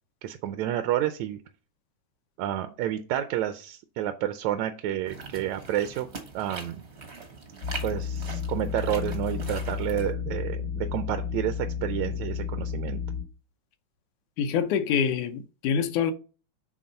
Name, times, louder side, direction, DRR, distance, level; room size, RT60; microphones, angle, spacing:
voice 1, 0.2-1.4 2.4-6.1 6.3-6.8 7.8-13.0, right 12 dB, 80° right, 1.8 m, -30 dB
sound 1, 5.0-10.1, right 4 dB, 55° right, 0.7 m, -42 dB
sound 2, 7.6-13.2, left 7 dB, 60° left, 1.0 m, -32 dB
voice 2, 14.4-16.1, left 7 dB, 85° left, 2.2 m, -26 dB
8.7 x 3.5 x 5.4 m
omnidirectional pair, 3.4 m